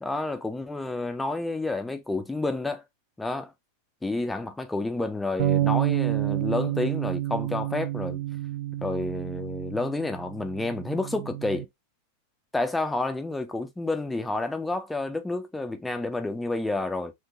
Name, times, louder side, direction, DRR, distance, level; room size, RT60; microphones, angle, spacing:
voice 1, 0.0-2.8 3.2-3.5 4.0-8.2 8.8-11.7 12.5-17.1, left 2 dB, 5° left, 0.6 m, -30 dB
sound 1, 5.4-11.6, right 15 dB, 45° right, 0.4 m, -29 dB
3.6 x 2.8 x 2.6 m
figure-of-eight pair, 90°, 0 cm